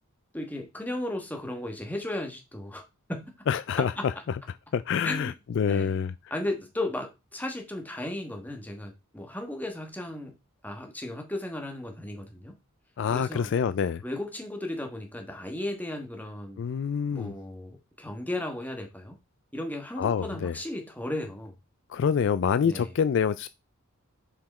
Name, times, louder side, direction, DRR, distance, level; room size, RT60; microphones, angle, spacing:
voice 1, 0.3-2.8 3.1-3.3 4.0-4.1 5.0-5.3 5.7-6.0 6.3-10.3 10.6-12.5 13.1-13.5 14.0-16.6 17.1-19.2 19.5-21.5 22.6-22.9, left 1 dB, 5° left, 1.3 m, -35 dB
voice 2, 3.5-4.4 4.7-6.1 13.0-14.0 16.6-17.3 20.0-20.5 21.9-23.5, left 7 dB, 55° left, 0.3 m, -26 dB
5.7 x 4.9 x 4.2 m
head